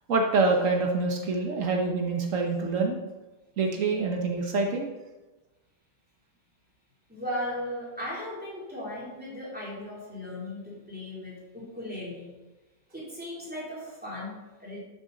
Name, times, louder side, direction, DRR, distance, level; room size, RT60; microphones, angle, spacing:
voice 1, 0.1-3.0 3.6-4.9, right 3 dB, 75° right, 1 dB, 1.4 m, -26 dB
voice 2, 7.1-12.3 12.9-14.8, left 1 dB, 5° right, -7 dB, 3.4 m, -37 dB
12.5 x 6.3 x 4.0 m, 1.1 s
omnidirectional pair, 1.3 m